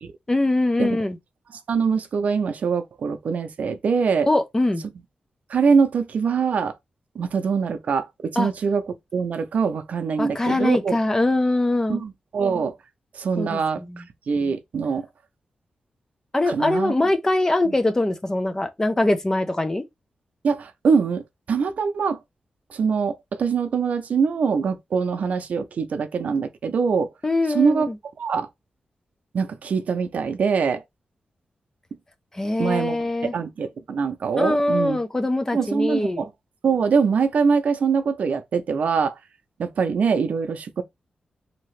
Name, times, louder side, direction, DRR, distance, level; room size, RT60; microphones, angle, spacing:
voice 1, 0.3-1.2 4.3-4.8 8.4-8.5 10.2-12.0 13.4-14.0 16.3-19.8 27.2-28.0 32.3-33.3 34.4-36.3, left 2 dB, 20° left, 0.6 m, -22 dB
voice 2, 1.7-4.3 5.5-6.7 7.1-8.9 9.1-11.0 11.9-12.8 13.1-15.1 16.4-16.9 17.7-17.8 20.4-22.2 22.7-27.1 27.5-27.9 28.2-28.5 29.3-30.8 32.6-35.0 35.5-36.3 36.6-39.2 39.6-40.8, right 5 dB, 70° right, 0.5 m, -23 dB
2.9 x 2.7 x 3.1 m
wide cardioid pair, 95°, 3 cm